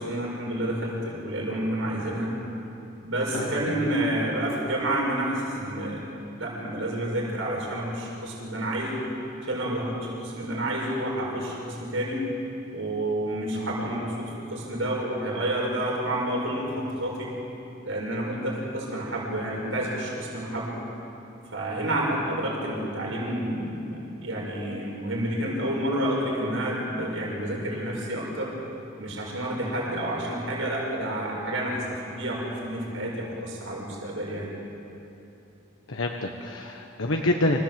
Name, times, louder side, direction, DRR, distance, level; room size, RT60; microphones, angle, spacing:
voice 1, 0.0-2.3 3.0-6.0 6.3-9.0 9.5-12.2 12.7-17.3 17.8-20.8 21.5-28.5 29.0-34.5, right 1 dB, 80° right, -3 dB, 6.0 m, -29 dB
voice 2, 3.3-3.9 13.6-13.7 35.9-37.6, left 1 dB, 85° left, 2 dB, 1.4 m, -27 dB
27.0 x 16.5 x 7.8 m, 2.9 s
head